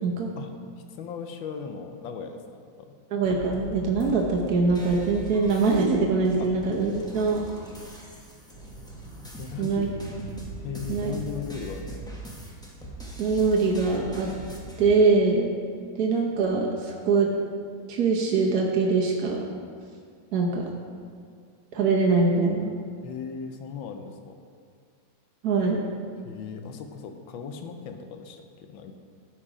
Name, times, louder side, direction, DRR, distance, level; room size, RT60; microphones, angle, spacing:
voice 1, 0.0-0.3 3.1-7.4 9.6-9.9 10.9-11.2 13.2-14.3 14.8-15.5 15.9-17.3 17.9-19.4 20.3-20.7 21.7-22.8 25.4-25.8, right 4 dB, 60° right, -2 dB, 1.3 m, -23 dB
voice 2, 1.0-2.4 2.8-2.9 6.4-6.5 9.4-9.9 10.6-12.0 23.0-24.4 26.2-28.9, left 6 dB, 85° left, 6 dB, 1.5 m, -37 dB
sound 1, 3.2-14.8, right 1 dB, 5° left, 0.8 m, -40 dB
13.0 x 4.7 x 4.9 m, 2.2 s
omnidirectional pair, 2.1 m